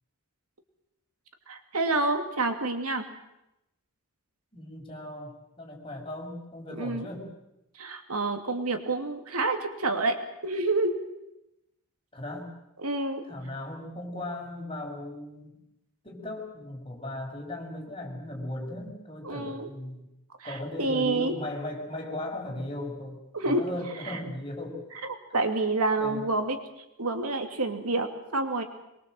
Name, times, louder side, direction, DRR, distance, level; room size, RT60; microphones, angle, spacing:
voice 1, 1.5-3.0 6.7-7.1 7.7-10.9 12.8-13.2 19.2-19.7 20.4-21.3 23.3-23.6 24.0-24.2 25.3-28.6, right 2 dB, 80° right, 6 dB, 2.6 m, -28 dB
voice 2, 4.5-7.3 12.1-12.5 13.3-15.5 16.0-20.0 20.4-23.2 23.4-24.8 26.0-26.2, left 1 dB, 25° left, -1 dB, 6.3 m, -37 dB
24.5 x 22.5 x 7.8 m, 0.87 s
head